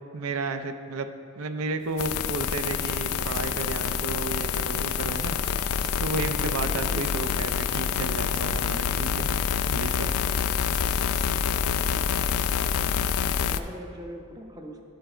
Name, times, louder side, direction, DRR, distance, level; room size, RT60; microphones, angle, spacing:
voice 1, 0.1-1.1 1.4-5.4 6.0-9.3 9.7-10.1, right 3 dB, 85° right, 8 dB, 0.5 m, -32 dB
sound 1, 1.8-12.0, right 1 dB, 60° right, 0.9 m, -48 dB
sound 2, 2.0-13.6, left 7 dB, 85° left, 0.3 m, -27 dB
voice 2, 11.9-12.3 13.4-14.8, equal, 20° right, 3 dB, 0.6 m, -41 dB
11.5 x 4.6 x 4.4 m, 2.4 s
head